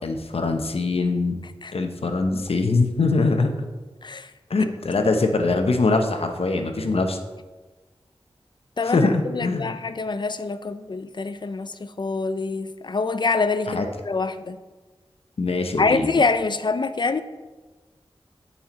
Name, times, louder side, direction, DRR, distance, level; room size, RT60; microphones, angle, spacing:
voice 1, 0.0-1.4 1.7-3.7 4.5-7.2 8.8-9.7 13.7-13.8 15.4-16.1, left 3 dB, 75° left, 5 dB, 0.9 m, -22 dB
voice 2, 8.8-14.6 15.8-17.2, left 4 dB, 50° left, 12 dB, 0.5 m, -25 dB
8.7 x 5.6 x 4.3 m, 1.2 s
wide cardioid pair, 55°, 10 cm